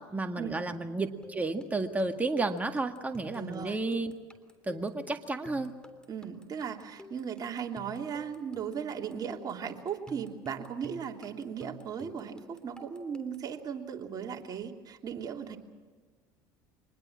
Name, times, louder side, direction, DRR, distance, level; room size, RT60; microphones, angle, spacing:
voice 1, 0.0-4.1 4.6-5.7, right 3 dB, 15° right, 5 dB, 2.0 m, -32 dB
sound 1, 1.2-13.5, equal, 10° left, 3.2 m, -52 dB
voice 2, 3.3-3.8 6.1-15.6, right 7 dB, 40° right, 2 dB, 3.2 m, -37 dB
24.5 x 20.5 x 7.5 m, 1.5 s
hypercardioid pair, 80°, 10 cm